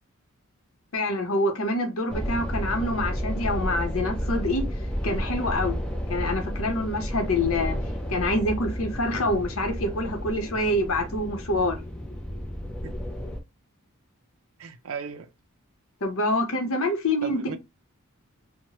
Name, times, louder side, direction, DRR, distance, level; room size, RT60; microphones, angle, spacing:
voice 1, 0.9-4.7 5.0-5.8 6.1-7.8 8.1-11.8 16.0-17.6, left 1 dB, 70° left, 0.8 m, -26 dB
sound 1, 2.1-13.4, equal, 5° left, 0.5 m, -31 dB
voice 2, 12.7-13.0 14.6-15.3 17.2-17.6, right 6 dB, 70° right, 0.4 m, -36 dB
3.0 x 2.1 x 2.8 m
head